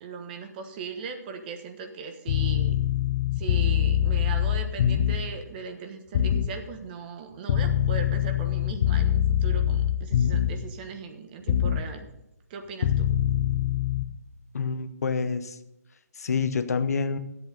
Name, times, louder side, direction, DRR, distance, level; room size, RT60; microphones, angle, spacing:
voice 1, 0.0-2.8 3.4-12.1 12.5-13.1, right 5 dB, 35° right, 6 dB, 1.3 m, -38 dB
sound 1, 2.3-5.3 6.1-6.5 7.5-10.7 11.5-11.9 12.8-14.0, left 10 dB, 40° left, 0.8 m, -24 dB
voice 2, 14.5-15.6 16.2-17.2, left 5 dB, 65° left, 10 dB, 0.9 m, -27 dB
11.0 x 8.0 x 5.3 m, 0.86 s
hypercardioid pair, 150°, 9 cm